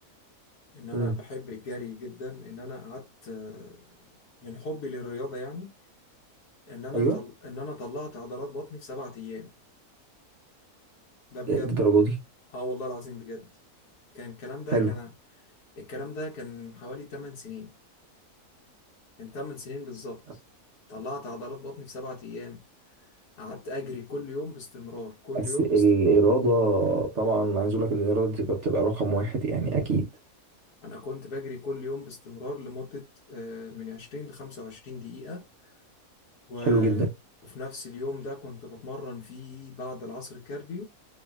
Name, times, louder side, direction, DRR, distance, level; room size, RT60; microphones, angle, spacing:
voice 1, 0.7-3.9 4.4-5.7 6.7-9.5 11.3-11.8 12.5-13.5 14.1-17.7 19.2-20.4 20.9-23.1 23.4-26.3 30.8-35.7 36.5-37.1 37.4-40.8, left 2 dB, 85° left, 1.4 m, -38 dB
voice 2, 11.5-12.1 14.7-14.9 25.3-30.0 36.6-37.1, right 3 dB, 60° right, 1.0 m, -23 dB
3.1 x 2.7 x 2.3 m
omnidirectional pair, 1.6 m